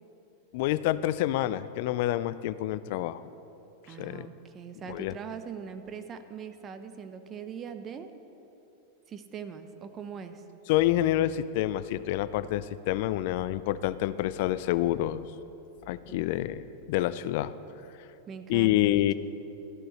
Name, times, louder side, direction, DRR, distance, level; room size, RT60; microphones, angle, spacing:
voice 1, 0.5-3.2 4.0-4.3 4.9-5.1 10.7-15.2 15.9-17.5 18.5-19.1, left 14 dB, 60° left, 15 dB, 0.4 m, -27 dB
voice 2, 3.9-8.1 9.1-10.4 16.1-16.2 18.3-19.1, right 6 dB, 30° right, 9 dB, 0.7 m, -41 dB
14.0 x 11.5 x 3.1 m, 2.9 s
hypercardioid pair, 100°, 0 cm